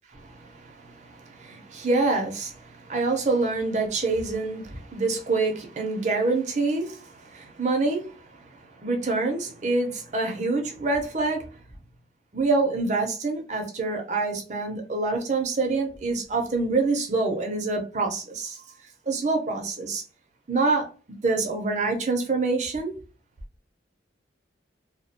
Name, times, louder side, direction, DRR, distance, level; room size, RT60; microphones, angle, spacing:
voice 1, 0.1-11.5 12.3-18.6 19.1-20.0 20.5-20.9 21.2-22.9, right 3 dB, 40° right, 0.5 m, -26 dB
2.3 x 2.0 x 2.6 m
head